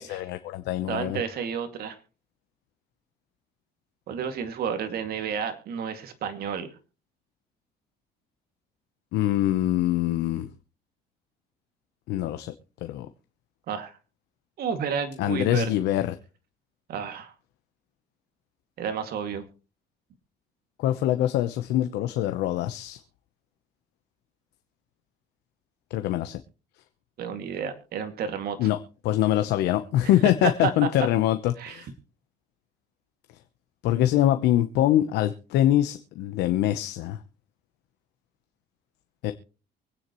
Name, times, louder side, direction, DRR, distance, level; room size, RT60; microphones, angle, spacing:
voice 1, 0.0-1.2 9.1-10.5 12.1-12.5 12.8-13.1 15.2-16.1 20.8-23.0 25.9-26.4 28.6-28.8 29.0-31.9 33.8-37.2 39.2-39.3, left 13 dB, 85° left, 0.9 m, -24 dB
voice 2, 0.9-2.0 4.1-6.7 13.7-14.0 14.6-15.7 16.9-17.3 18.8-19.4 27.2-28.7 30.0-30.1 30.4-30.9 31.6-31.8, right 7 dB, 65° right, 2.3 m, -31 dB
24.0 x 9.6 x 3.1 m
cardioid pair, 110°, 17 cm